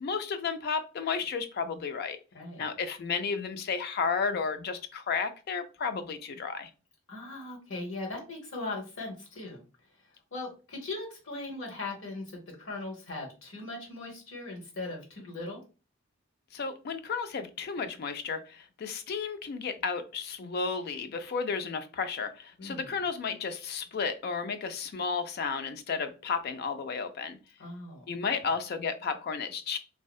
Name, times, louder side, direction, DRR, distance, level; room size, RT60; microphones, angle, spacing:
voice 1, 0.0-2.2 2.6-6.7 16.5-27.4 28.1-29.8, left 5 dB, 50° left, 10 dB, 0.3 m, -33 dB
voice 2, 2.3-2.7 7.1-9.6 10.3-15.6 22.6-23.0 27.6-28.0 28.4-28.5, left 2 dB, 65° left, -1 dB, 1.1 m, -39 dB
2.6 x 2.0 x 2.3 m, 0.32 s
head